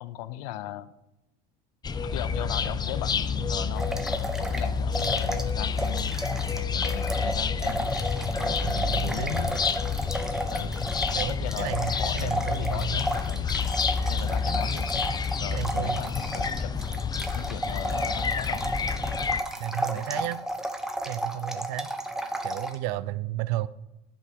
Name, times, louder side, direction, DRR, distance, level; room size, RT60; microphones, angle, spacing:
voice 1, 0.0-0.9 2.0-3.9 4.4-6.1 6.6-7.9 8.4-9.5 10.5-10.8 11.3-13.5 14.1-14.9 15.4-16.7 17.3-18.7 19.8-20.3, left 13 dB, 75° left, 0.7 m, -38 dB
sound 1, 1.8-19.4, left 5 dB, 20° left, 0.6 m, -29 dB
sound 2, 3.8-5.5 5.8-22.7, right 1 dB, ahead, 1.1 m, -33 dB
voice 2, 8.6-9.4 11.1-13.0 15.5-16.0 19.6-20.4 21.1-21.9 22.4-23.7, right 15 dB, 65° right, 0.5 m, -32 dB
12.0 x 5.4 x 5.3 m
supercardioid pair, 105°, 21 cm